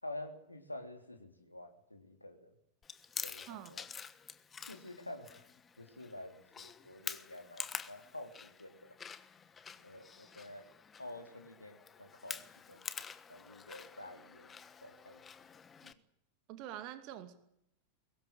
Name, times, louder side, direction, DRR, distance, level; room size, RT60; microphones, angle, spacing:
voice 1, 0.0-2.5 3.2-3.8 4.7-5.5 5.8-8.9 9.8-10.7 11.0-13.0 13.3-14.5 14.8-15.2 15.8-16.0, left 1 dB, 85° left, 5 dB, 3.5 m, -49 dB
Chewing mastication, 2.8-15.9, left 6 dB, 20° left, 1.2 m, -48 dB
voice 2, 16.5-17.3, right 12 dB, 40° right, 9 dB, 2.5 m, -45 dB
22.5 x 18.5 x 9.1 m, 0.78 s
figure-of-eight pair, 90°, 0 cm